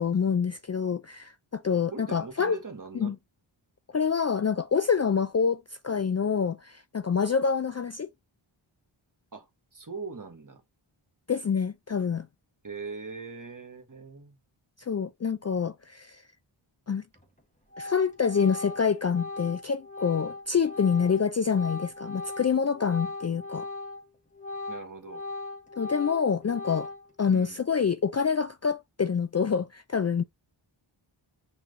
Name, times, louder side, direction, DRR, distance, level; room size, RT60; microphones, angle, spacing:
voice 1, 0.0-2.6 3.0-3.1 3.9-8.1 11.3-12.3 14.9-16.2 16.9-17.0 17.8-23.7 25.8-26.9 27.2-30.2, left 6 dB, 35° left, 0.4 m, -26 dB
voice 2, 1.9-3.2 9.3-10.6 12.6-14.4 24.7-25.2 27.3-27.6, right 4 dB, 40° right, 1.6 m, -41 dB
Organ, 17.2-17.4 17.7-24.1 24.3-27.2, left 3 dB, 15° left, 1.5 m, -38 dB
5.8 x 3.2 x 2.7 m
wide cardioid pair, 65°, 49 cm